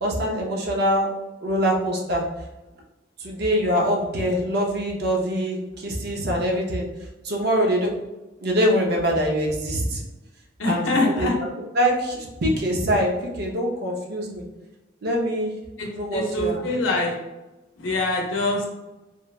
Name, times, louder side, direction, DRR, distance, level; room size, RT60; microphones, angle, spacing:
voice 1, 0.0-1.1 1.4-2.2 3.2-6.9 7.2-7.9 8.4-10.0 10.6-11.3 11.7-14.4 15.0-15.5 15.9-16.6, equal, 55° right, -1 dB, 0.6 m, -24 dB
voice 2, 10.6-11.3 15.8-17.1 17.8-18.7, left 2 dB, 80° left, 0 dB, 0.6 m, -24 dB
3.1 x 2.1 x 2.3 m, 1.0 s
head